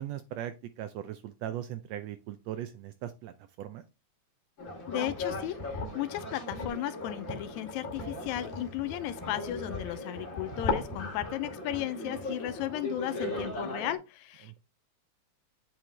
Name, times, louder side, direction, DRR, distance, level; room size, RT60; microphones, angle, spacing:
voice 1, 0.0-3.8 14.4-14.6, right 11 dB, 80° right, 1.6 m, -39 dB
sound 1, 4.6-14.0, left 2 dB, 35° left, 1.8 m, -37 dB
voice 2, 4.9-14.6, left 13 dB, 85° left, 2.0 m, -35 dB
7.8 x 4.6 x 3.3 m
omnidirectional pair, 3.3 m